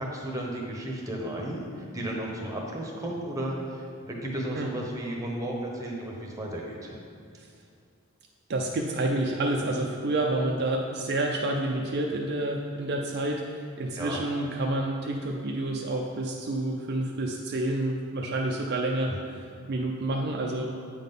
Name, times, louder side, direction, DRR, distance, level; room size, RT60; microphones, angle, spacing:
voice 1, 0.0-6.9 14.0-14.2 19.1-19.2, right 1 dB, 15° right, -1 dB, 1.0 m, -34 dB
voice 2, 8.5-19.4 19.7-20.7, right 2 dB, 50° right, 0 dB, 0.5 m, -29 dB
8.3 x 3.8 x 5.4 m, 2.3 s
head